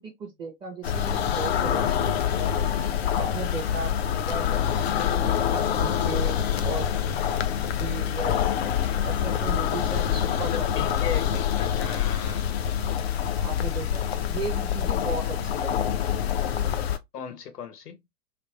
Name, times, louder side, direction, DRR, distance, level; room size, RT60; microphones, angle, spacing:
voice 1, 0.0-2.5 2.9-6.3 6.6-7.3 7.8-8.5 9.0-10.7 13.4-14.0 14.3-16.6, right 3 dB, 10° right, 0.6 m, -37 dB
sound 1, 0.8-17.0, left 9 dB, 45° left, 0.4 m, -26 dB
voice 2, 10.4-12.6 17.1-18.0, left 7 dB, 75° left, 1.0 m, -37 dB
3.3 x 2.2 x 3.0 m
figure-of-eight pair, 115°, 47 cm